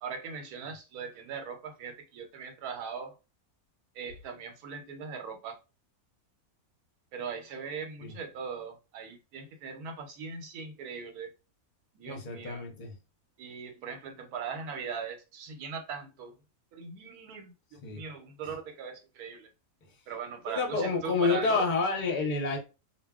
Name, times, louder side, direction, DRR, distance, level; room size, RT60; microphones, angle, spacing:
voice 1, 0.0-3.1 3.9-5.6 7.1-11.3 11.9-12.6 13.4-16.4 16.7-19.5 20.1-21.7, right 6 dB, 85° right, 1.1 m, -40 dB
voice 2, 12.1-12.9 17.8-18.0 20.5-22.6, left 4 dB, 45° left, 0.7 m, -29 dB
2.3 x 2.2 x 3.5 m
omnidirectional pair, 1.5 m